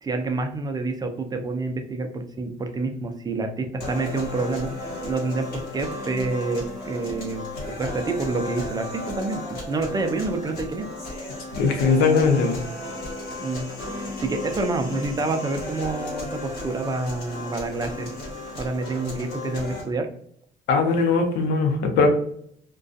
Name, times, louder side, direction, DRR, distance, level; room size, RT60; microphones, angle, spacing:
voice 1, 0.0-5.5 5.7-9.4 9.7-10.9 13.4-13.7 14.0-18.1 18.6-20.1, right 3 dB, 25° right, 5 dB, 0.4 m, -28 dB
sound 1, 3.8-19.8, left 2 dB, 75° left, 1.1 m, -34 dB
voice 2, 11.6-12.6 20.7-22.1, left 4 dB, 90° left, 4 dB, 0.6 m, -20 dB
2.3 x 2.2 x 2.5 m, 0.64 s
cardioid pair, 110°, 17 cm